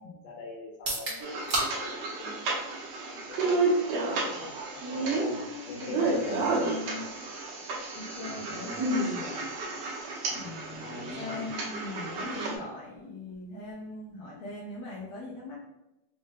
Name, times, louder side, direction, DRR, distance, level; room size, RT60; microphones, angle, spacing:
voice 1, 0.0-1.4 1.7-4.4 4.9-6.4 6.8-7.0 8.3-8.8 10.3-10.4 10.7-11.5, left 3 dB, 65° left, -2 dB, 1.8 m, -44 dB
sound 1, 0.7-14.6, right 1 dB, 50° right, 1.0 m, -42 dB
sound 2, 1.2-12.6, right 2 dB, 70° right, 1.8 m, -31 dB
voice 2, 4.7-7.1 7.6-9.5 10.3-15.6, left 2 dB, 85° left, -6 dB, 1.1 m, -41 dB
5.1 x 2.1 x 3.5 m, 0.94 s
omnidirectional pair, 3.3 m